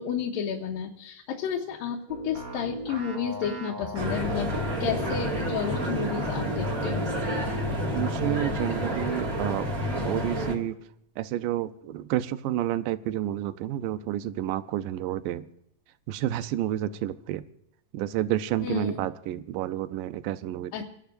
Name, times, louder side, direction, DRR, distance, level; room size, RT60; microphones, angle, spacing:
voice 1, 0.0-4.5 4.8-7.1 18.6-19.0 20.7-20.8, left 8 dB, 85° left, -1 dB, 2.7 m, -31 dB
sound 1, 2.1-7.3, right 2 dB, 55° right, 0.9 m, -38 dB
sound 2, 4.0-10.6, equal, 30° right, 1.9 m, -29 dB
voice 2, 7.9-9.7 10.0-10.8 11.2-15.5 16.1-17.4 17.9-20.8, right 13 dB, 80° right, 11 dB, 2.2 m, -30 dB
29.5 x 11.5 x 2.6 m, 0.75 s
omnidirectional pair, 4.0 m